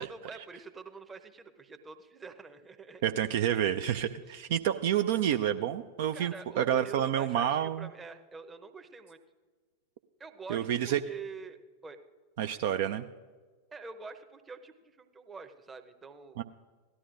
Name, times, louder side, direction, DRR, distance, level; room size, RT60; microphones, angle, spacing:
voice 1, 0.0-3.2 6.1-9.2 10.2-12.0 13.7-16.4, right 5 dB, 15° right, 8 dB, 0.8 m, -46 dB
voice 2, 3.0-7.9 10.5-11.0 12.4-13.1 16.4-16.5, right 10 dB, 55° right, 9 dB, 0.4 m, -29 dB
17.0 x 12.5 x 2.5 m, 1.4 s
figure-of-eight pair, 90°, 0 cm